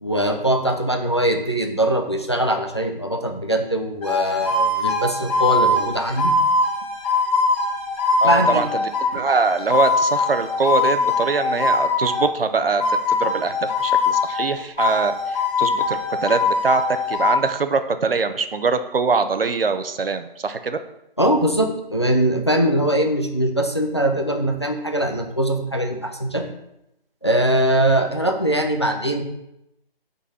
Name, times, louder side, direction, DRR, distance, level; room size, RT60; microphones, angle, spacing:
voice 1, 0.0-6.4 8.2-8.6 21.2-26.5 27.2-29.2, right 1 dB, 30° left, 4 dB, 0.5 m, -21 dB
sound 1, 4.0-12.3 12.8-14.5 14.8-17.4, left 3 dB, 10° left, 1.9 m, -21 dB
voice 2, 8.2-16.8 17.1-20.8, right 4 dB, 70° right, 9 dB, 0.8 m, -23 dB
6.1 x 4.1 x 5.4 m, 0.86 s
hypercardioid pair, 180°, 30 cm